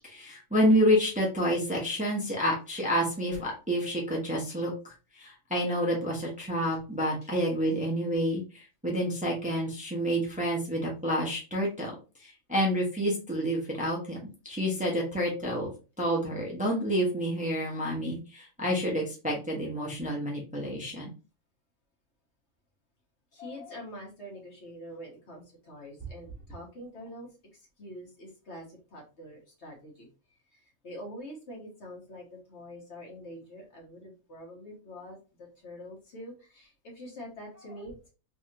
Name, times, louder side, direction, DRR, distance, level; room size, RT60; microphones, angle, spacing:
voice 1, 0.0-11.9 12.2-14.2 14.4-15.7 16.0-21.1, equal, 5° right, -2 dB, 0.9 m, -29 dB
voice 2, 23.3-27.3 27.8-30.1 30.5-38.1, equal, 55° left, -1 dB, 1.4 m, -45 dB
3.4 x 3.1 x 2.8 m, 0.33 s
omnidirectional pair, 1.4 m